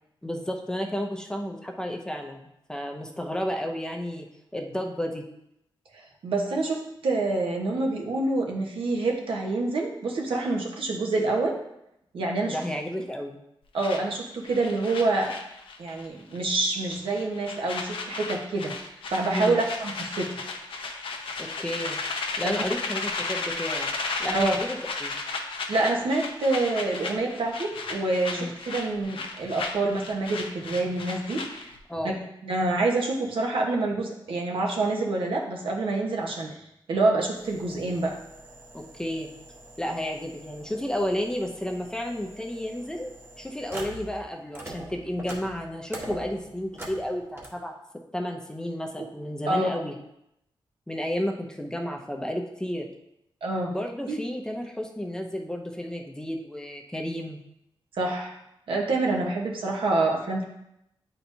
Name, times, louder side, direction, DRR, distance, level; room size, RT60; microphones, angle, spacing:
voice 1, 0.2-4.3 4.5-5.2 12.5-13.4 19.3-19.6 21.4-22.0 22.4-23.9 24.2-25.2 28.3-28.5 31.9-32.2 38.7-39.3 39.8-43.1 43.4-47.7 48.1-50.0 50.9-52.9 53.7-57.4, equal, 10° left, 2 dB, 0.6 m, -32 dB
voice 2, 5.9-11.6 12.1-12.6 13.7-15.3 15.8-20.3 22.4-22.6 24.3-24.6 25.7-31.7 32.0-32.2 32.4-36.5 36.9-38.2 49.0-49.1 49.5-49.7 53.4-53.7 54.1-54.2 57.9-58.4 58.7-60.4, right 2 dB, 80° right, 0 dB, 1.2 m, -27 dB
sound 1, 13.8-16.1 16.3-16.6 16.9-31.8, left 4 dB, 80° left, 0.8 m, -34 dB
sound 2, 37.3-44.2 44.5-47.5, right 1 dB, 25° right, 1.1 m, -43 dB
9.6 x 4.4 x 2.7 m, 0.82 s
wide cardioid pair, 140°, 9 cm